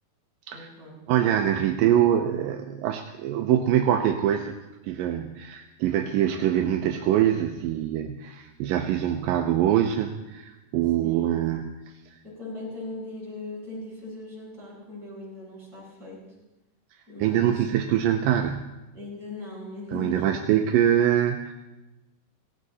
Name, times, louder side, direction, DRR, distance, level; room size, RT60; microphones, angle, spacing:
voice 1, 0.5-1.0 11.0-11.4 12.2-16.2 17.1-17.7 18.9-20.4, left 2 dB, 25° right, -8 dB, 8.1 m, -39 dB
voice 2, 1.1-4.5 4.8-11.7 17.2-18.7 19.9-21.5, right 10 dB, 80° right, 4 dB, 2.4 m, -24 dB
18.0 x 16.5 x 4.1 m, 1.0 s
omnidirectional pair, 4.2 m